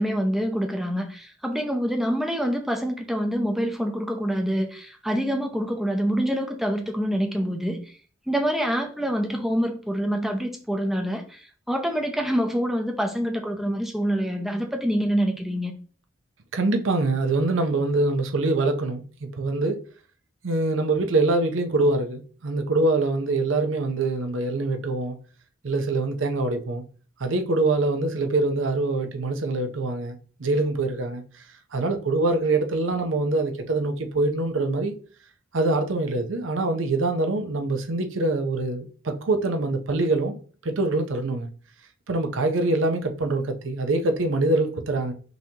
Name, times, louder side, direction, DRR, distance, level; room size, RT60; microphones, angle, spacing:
voice 1, 0.0-7.9 8.3-15.7, equal, ahead, 0.6 m, -26 dB
voice 2, 16.5-19.8 20.4-25.1 25.6-26.8 27.2-31.2 31.7-34.9 35.5-40.4 40.6-41.5 42.1-45.1, right 2 dB, 90° right, 0.6 m, -24 dB
5.5 x 2.8 x 2.8 m
head